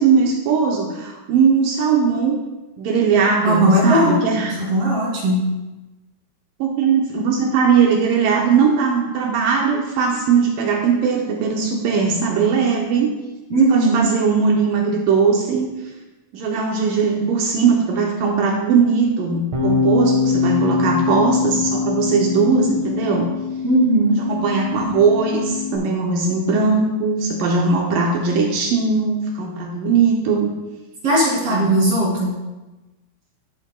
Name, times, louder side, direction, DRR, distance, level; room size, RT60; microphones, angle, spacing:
voice 1, 0.0-2.4 2.8-4.6 6.6-13.1 13.7-15.7 16.3-23.3 24.2-30.5 31.5-31.8, right 5 dB, 85° right, 0 dB, 1.9 m, -19 dB
voice 2, 3.4-4.2 4.6-5.4 13.5-14.1 23.6-24.2 31.0-32.3, right 1 dB, 40° right, -5 dB, 3.1 m, -17 dB
Bass guitar, 19.5-25.8, left 5 dB, 60° right, 1.9 m, -23 dB
12.0 x 8.3 x 2.3 m, 1.1 s
omnidirectional pair, 5.0 m